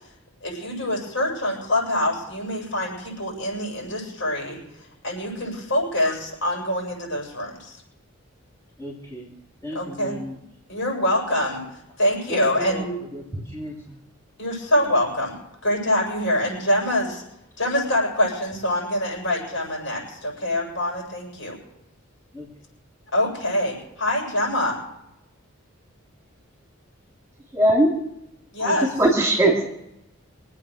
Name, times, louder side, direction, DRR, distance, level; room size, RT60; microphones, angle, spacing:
voice 1, 0.4-4.6 5.0-7.8 9.7-10.2 10.7-11.6 12.0-13.0 14.4-15.4 15.6-17.2 17.6-21.6 23.1-24.8 28.5-28.9, left 1 dB, 65° left, -1 dB, 8.0 m, -25 dB
voice 2, 8.8-9.3 9.6-10.4 12.3-13.9 17.8-18.0 22.3-22.5, equal, 15° left, -5 dB, 3.0 m, -36 dB
voice 3, 27.5-27.9 28.6-29.6, right 1 dB, 15° right, -1 dB, 2.6 m, -19 dB
25.5 x 8.8 x 6.4 m, 0.84 s
head